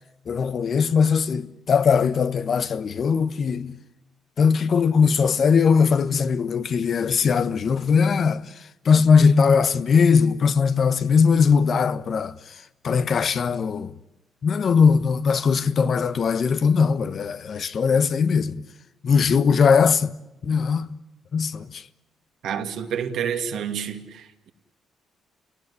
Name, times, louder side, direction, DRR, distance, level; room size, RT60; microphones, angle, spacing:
voice 1, 0.3-3.8 4.4-13.9 14.4-18.6 19.0-20.1 20.4-21.0 21.3-21.9, left 6 dB, 50° left, 1.2 m, -20 dB
voice 2, 22.4-24.5, right 8 dB, 75° right, 2.4 m, -29 dB
29.0 x 18.5 x 10.0 m
cardioid pair, 90°, 0 cm